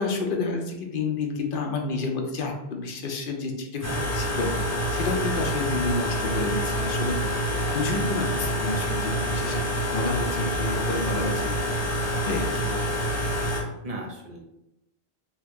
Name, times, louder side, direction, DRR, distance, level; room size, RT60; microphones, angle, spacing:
voice 1, 0.0-4.5 4.9-7.3 7.7-9.6 9.9-11.5 12.2-12.7, left 3 dB, 60° left, 2 dB, 0.7 m, -29 dB
sound 1, 3.8-13.6, equal, 20° left, 0.6 m, -27 dB
voice 2, 7.2-7.8 12.4-13.3 13.8-14.4, right 1 dB, 45° right, 1 dB, 0.6 m, -39 dB
2.9 x 2.3 x 3.4 m, 0.89 s
omnidirectional pair, 1.1 m